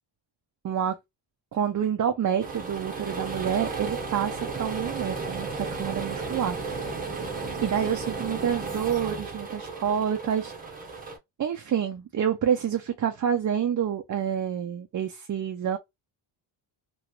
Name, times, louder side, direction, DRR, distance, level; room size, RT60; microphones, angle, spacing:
voice 1, 0.6-1.0 1.5-5.5 5.8-6.8 7.6-10.5 11.4-15.8, right 8 dB, 40° right, 0.5 m, -28 dB
sound 1, 2.4-11.2, right 4 dB, 15° right, 0.8 m, -34 dB
3.0 x 3.0 x 2.2 m
wide cardioid pair, 170°, 49 cm